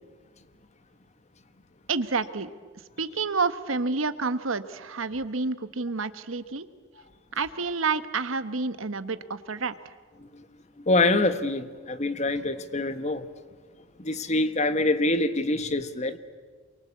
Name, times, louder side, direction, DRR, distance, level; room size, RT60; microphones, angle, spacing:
voice 1, 1.9-2.5 3.0-6.7 7.3-9.9, right 4 dB, 80° right, 1.2 m, -29 dB
voice 2, 10.8-13.3 14.0-16.2, left 2 dB, 35° left, 1.2 m, -25 dB
27.5 x 23.5 x 8.5 m
head